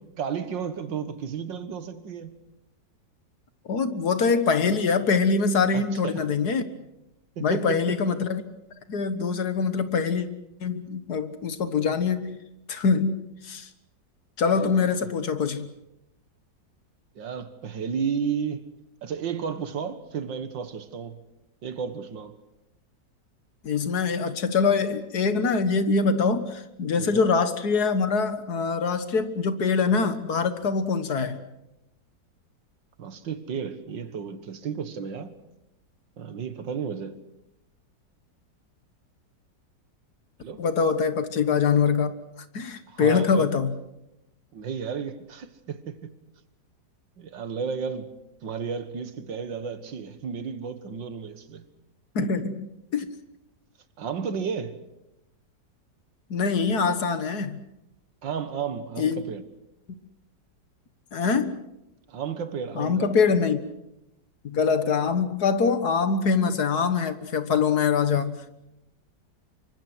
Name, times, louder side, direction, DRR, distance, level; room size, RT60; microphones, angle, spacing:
voice 1, 0.2-2.4 5.7-6.2 7.4-8.0 14.5-14.9 17.2-18.7 19.0-21.2 21.6-22.4 27.0-27.2 33.0-35.4 36.2-37.2 40.4-40.6 42.9-43.5 44.5-46.1 47.2-48.1 48.4-51.7 52.2-52.3 54.0-54.8 58.2-59.4 62.1-63.2, right 6 dB, 85° right, 2.2 m, -33 dB
voice 2, 3.7-6.6 7.4-8.4 8.9-10.3 10.6-12.4 12.7-13.7 14.4-15.7 23.6-31.5 40.6-42.1 42.5-43.7 52.2-52.6 52.9-53.1 56.3-57.6 59.0-59.2 61.1-61.6 62.8-63.6 64.4-68.5, left 5 dB, 60° left, 1.9 m, -24 dB
25.5 x 24.0 x 6.2 m
omnidirectional pair, 1.9 m